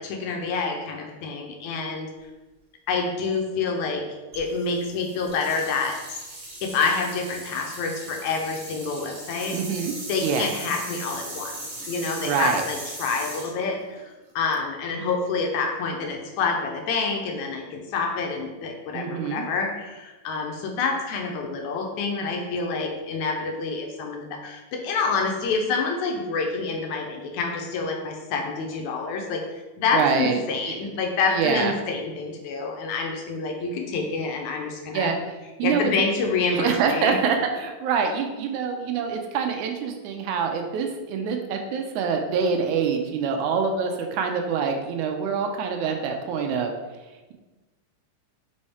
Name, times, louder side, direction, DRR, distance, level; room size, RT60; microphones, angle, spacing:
voice 1, 0.0-2.1 2.9-4.0 4.4-6.2 6.6-9.6 10.1-11.6 11.9-29.4 29.8-35.1 35.6-37.2, left 4 dB, 75° left, 2 dB, 2.0 m, -27 dB
sound 1, 4.3-14.5, right 1 dB, 45° right, 1.1 m, -39 dB
voice 2, 9.5-9.9 10.2-10.5 12.2-12.6 18.9-19.5 29.9-30.4 30.7-30.8 31.3-31.7 34.9-35.2 35.6-35.9 36.5-46.7, right 6 dB, 80° right, 4 dB, 2.0 m, -25 dB
5.5 x 4.8 x 4.2 m, 1.2 s
omnidirectional pair, 3.6 m